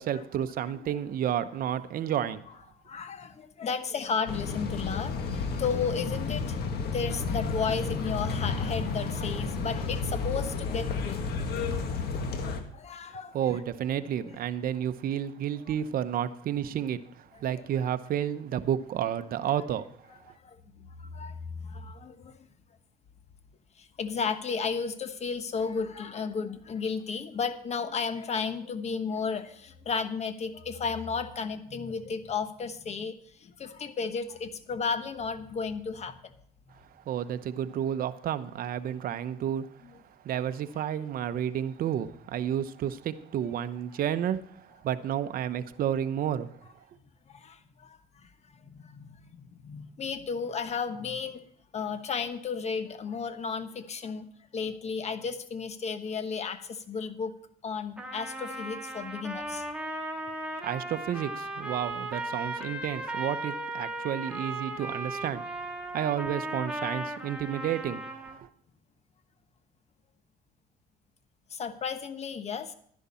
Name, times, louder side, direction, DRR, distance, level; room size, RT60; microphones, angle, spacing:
voice 1, 0.0-2.4 13.3-20.2 37.1-39.7 40.2-46.5 60.6-68.5, right 10 dB, 60° right, 0.8 m, -31 dB
voice 2, 2.8-6.6 6.9-11.3 12.7-13.4 14.2-14.4 19.4-19.6 20.4-22.4 23.8-36.2 47.3-48.3 48.6-51.4 51.7-54.3 54.5-57.3 57.6-59.6 71.5-72.7, left 5 dB, 40° left, 1.2 m, -33 dB
sound 1, 4.3-12.6, left 4 dB, 70° left, 1.7 m, -31 dB
Trumpet, 58.0-68.4, right 1 dB, 5° right, 1.8 m, -36 dB
11.5 x 11.0 x 4.3 m
cardioid pair, 110°, 17 cm